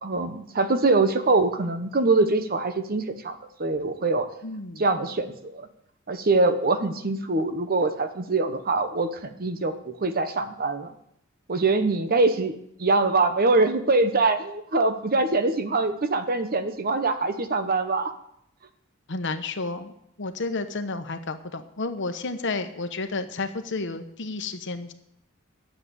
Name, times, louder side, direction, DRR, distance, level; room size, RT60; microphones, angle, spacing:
voice 1, 0.0-3.3 3.6-4.3 4.8-5.7 6.1-10.9 11.5-12.5 12.8-18.1, right 3 dB, 45° right, 9 dB, 1.0 m, -23 dB
voice 2, 4.4-4.8 19.1-24.9, left 3 dB, 60° left, 8 dB, 1.0 m, -31 dB
10.5 x 7.6 x 8.4 m, 0.75 s
head